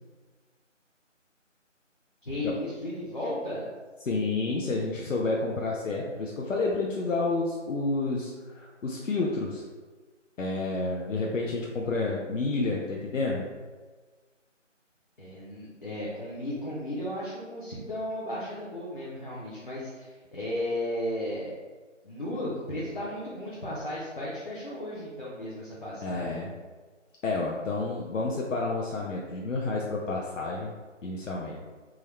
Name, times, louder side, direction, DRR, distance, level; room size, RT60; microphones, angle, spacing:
voice 1, 2.2-3.7 15.2-21.5 22.0-26.6, left 1 dB, 40° left, -8 dB, 0.6 m, -35 dB
voice 2, 4.1-9.6 10.4-13.5 26.0-26.5 27.2-30.7 31.0-31.6, left 3 dB, 80° left, -2 dB, 0.6 m, -30 dB
3.5 x 2.1 x 3.2 m, 1.4 s
figure-of-eight pair, 170°, 38 cm